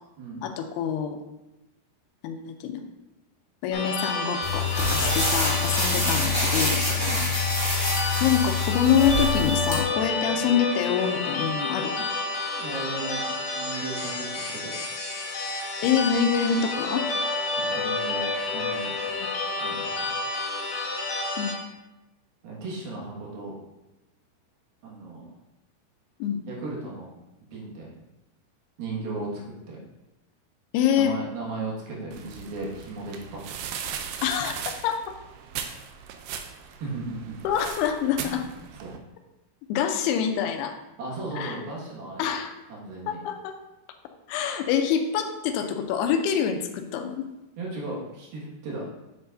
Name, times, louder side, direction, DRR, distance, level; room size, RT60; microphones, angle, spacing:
voice 1, 0.4-1.2 2.2-2.8 3.6-6.9 8.2-12.0 15.8-17.1 19.2-19.3 21.4-21.6 26.2-26.4 30.7-31.2 34.2-35.0 37.4-38.5 39.7-40.8 41.3-41.6 42.2-42.5 43.1-43.6 44.3-47.3, left 8 dB, 85° left, 5 dB, 2.6 m, -26 dB
sound 1, 3.7-21.5, left 3 dB, 55° left, 2.1 m, -30 dB
sound 2, 4.4-9.8, left 3 dB, 20° right, 0.6 m, -25 dB
voice 2, 7.0-7.3 10.3-10.4 12.6-14.8 17.5-18.2 18.5-18.9 19.6-19.8 22.4-23.5 24.8-25.3 26.5-27.1 27.5-27.9 28.8-29.8 31.0-33.4 36.8-37.4 38.8-38.9 41.0-42.3 42.7-43.2 47.6-48.8, right 3 dB, 70° right, -4 dB, 3.4 m, -35 dB
sound 3, 32.1-39.0, right 8 dB, 85° right, 2.0 m, -38 dB
7.8 x 7.7 x 2.6 m, 0.97 s
omnidirectional pair, 4.7 m